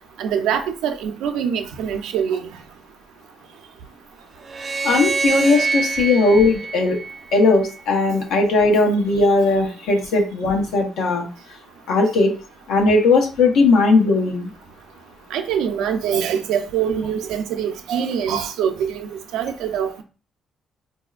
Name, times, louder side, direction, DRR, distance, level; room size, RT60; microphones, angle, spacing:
voice 1, 0.2-2.5 15.3-20.0, right 8 dB, 90° right, 0.5 m, -24 dB
sound 1, 4.4-7.7, right 4 dB, 40° right, 0.6 m, -25 dB
voice 2, 4.8-7.0 7.3-11.3 11.9-12.4 12.7-14.5, left 3 dB, 85° left, 1.0 m, -17 dB
4.2 x 2.6 x 2.4 m
cardioid pair, 90°, 0 cm